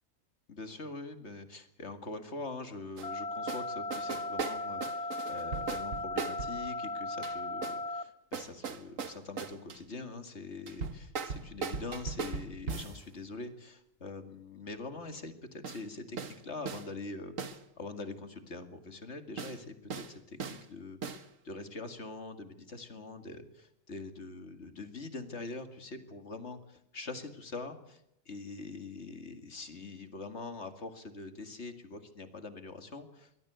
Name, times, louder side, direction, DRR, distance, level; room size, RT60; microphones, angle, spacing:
voice 1, 0.5-33.3, left 3 dB, 55° left, 8 dB, 2.4 m, -44 dB
sound 1, 3.0-8.0, left 2 dB, 30° left, 1.1 m, -37 dB
sound 2, 3.0-3.1 3.5-3.7 3.9-6.6 7.2-7.8 8.3-9.8 10.7-13.0 15.6-15.8 16.2-16.4 16.7-16.9 17.4-17.6 19.4-19.6 19.9-20.1 20.4-20.6 21.0-21.2, right 5 dB, 70° right, 1.7 m, -38 dB
23.5 x 16.5 x 8.1 m, 0.81 s
omnidirectional pair, 1.4 m